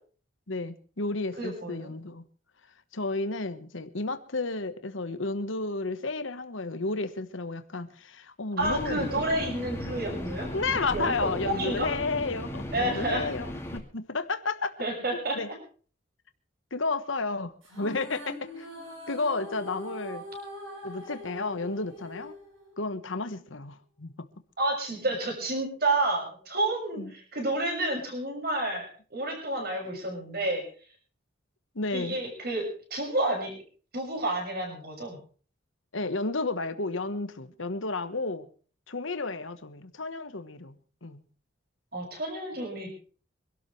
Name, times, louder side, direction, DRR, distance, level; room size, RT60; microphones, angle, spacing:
voice 1, 0.5-2.2 2.9-9.3 10.5-14.8 15.3-15.5 16.7-18.7 19.1-20.2 20.8-22.3 22.8-24.3 27.0-27.1 31.7-32.2 35.9-38.5 38.9-41.2, left 3 dB, 80° left, 1.3 m, -32 dB
voice 2, 1.4-1.9 8.6-10.5 10.9-11.9 12.7-13.3 14.8-15.4 24.6-30.6 31.9-33.5 33.9-35.2 41.9-42.9, right 2 dB, 50° right, 6.4 m, -30 dB
sound 1, 8.6-13.8, equal, 15° left, 2.3 m, -36 dB
sound 2, 17.6-23.1, left 1 dB, 90° right, 8.0 m, -43 dB
25.5 x 12.5 x 3.3 m
head